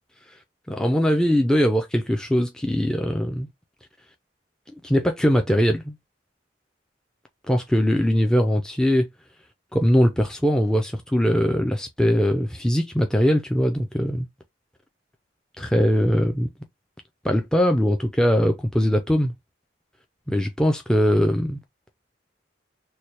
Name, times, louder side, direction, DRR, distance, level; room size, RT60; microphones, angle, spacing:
voice 1, 0.7-3.5 4.8-6.0 7.5-9.1 9.7-14.3 15.6-16.5 17.2-19.3 20.3-21.6, equal, 5° left, 0.4 m, -21 dB
3.3 x 2.2 x 4.3 m
head